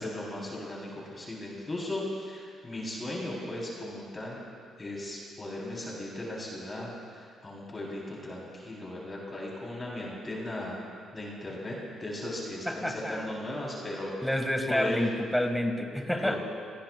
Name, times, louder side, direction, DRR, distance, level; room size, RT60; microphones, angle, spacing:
voice 1, 0.0-4.4 4.8-10.8 11.1-14.1 14.7-15.1 15.9-16.4, left 1 dB, 25° left, -4 dB, 3.7 m, -37 dB
voice 2, 12.7-13.3 14.2-16.4, left 1 dB, 5° left, 4 dB, 1.8 m, -29 dB
26.5 x 17.5 x 2.4 m, 2.2 s
cardioid pair, 90°, 0 cm